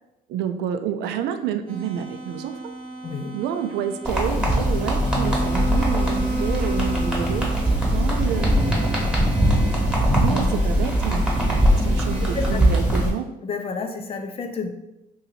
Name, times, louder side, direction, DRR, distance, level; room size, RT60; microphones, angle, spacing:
voice 1, 0.3-2.7 3.3-8.5 10.2-11.3 11.8-13.3, right 9 dB, 80° right, 9 dB, 0.4 m, -29 dB
sound 1, 1.7-12.6, right 1 dB, 30° right, 0.8 m, -34 dB
sound 2, 4.0-13.1, equal, 5° right, 1.0 m, -21 dB
voice 2, 13.4-14.7, left 4 dB, 35° left, 5 dB, 0.5 m, -30 dB
2.7 x 2.7 x 4.1 m, 0.92 s
cardioid pair, 110°, 17 cm